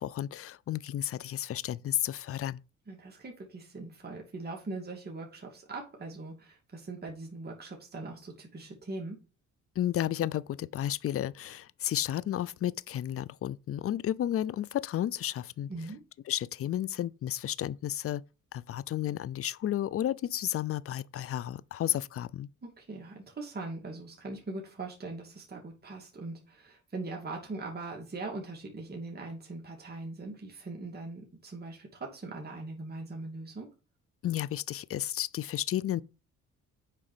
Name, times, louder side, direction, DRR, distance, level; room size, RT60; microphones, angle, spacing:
voice 1, 0.0-2.6 9.8-15.7 16.3-18.2 18.5-22.5 34.2-36.0, left 12 dB, 50° left, 0.5 m, -32 dB
voice 2, 2.9-9.2 15.7-16.0 22.6-33.7, right 3 dB, 30° right, 2.7 m, -41 dB
7.5 x 4.9 x 6.8 m
cardioid pair, 90°, 30 cm